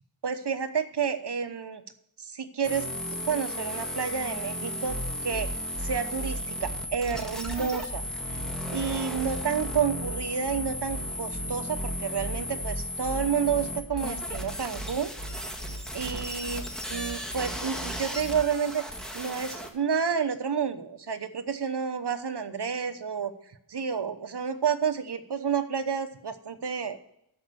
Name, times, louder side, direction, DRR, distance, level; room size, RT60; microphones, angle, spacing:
voice 1, 0.2-1.8 2.2-2.9 3.3-5.5 5.8-8.4 8.7-15.1 15.9-18.8 19.1-23.3 23.7-27.1, right 6 dB, 55° right, 9 dB, 1.0 m, -30 dB
sound 1, 2.6-19.7, equal, ahead, 1.7 m, -35 dB
sound 2, 4.9-18.4, right 1 dB, 25° left, 4.0 m, -37 dB
13.0 x 5.2 x 6.9 m, 0.78 s
wide cardioid pair, 70°, 49 cm